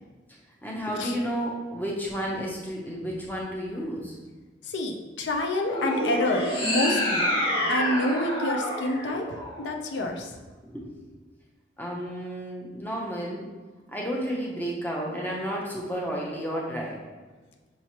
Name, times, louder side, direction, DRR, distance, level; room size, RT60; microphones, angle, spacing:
voice 1, 0.6-4.2 10.6-10.9 11.8-13.5 13.9-17.0, equal, 10° left, -2 dB, 0.7 m, -32 dB
voice 2, 4.6-10.3, left 1 dB, 80° left, 3 dB, 0.5 m, -28 dB
sound 1, 5.6-10.0, left 1 dB, 30° left, 1.1 m, -28 dB
5.8 x 3.1 x 2.8 m, 1.3 s
head